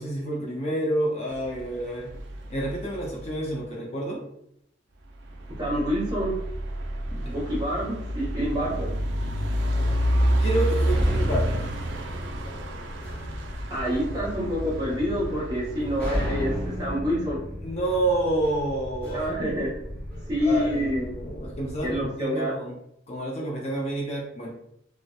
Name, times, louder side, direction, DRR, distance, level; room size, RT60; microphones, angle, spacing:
voice 1, 0.0-2.1 2.5-4.2 7.1-7.4 10.4-11.7 17.6-19.3 20.4-22.8 23.1-24.5, right 1 dB, 35° left, -2 dB, 0.5 m, -29 dB
Car Passby's on wet road, 1.3-3.5 5.2-16.9, right 1 dB, 75° right, 0.4 m, -29 dB
voice 2, 5.6-6.3 7.3-8.9 13.7-16.5 16.8-17.4 19.1-19.7 20.3-21.0 21.8-22.5, equal, 25° right, -7 dB, 1.0 m, -27 dB
sound 1, 8.4-22.1, equal, 10° left, 0.9 m, -34 dB
2.7 x 2.1 x 2.2 m, 0.75 s
head